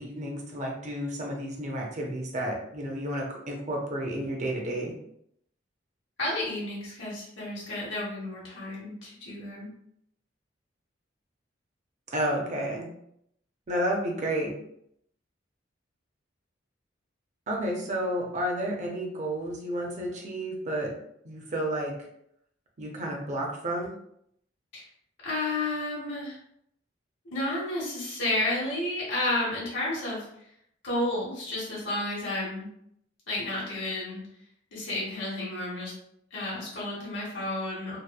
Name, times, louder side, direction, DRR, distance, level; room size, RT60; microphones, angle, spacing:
voice 1, 0.0-4.9 12.1-12.9 13.7-14.6 17.5-21.0 21.2-22.0 22.8-23.9, right 1 dB, 40° right, 0 dB, 0.5 m, -31 dB
voice 2, 6.2-9.7 24.7-24.8 25.2-26.4 27.2-30.3 30.8-32.7 33.3-34.2 34.7-35.9 36.3-38.0, left 1 dB, 70° left, -6 dB, 0.9 m, -31 dB
2.8 x 2.1 x 2.2 m, 0.73 s
head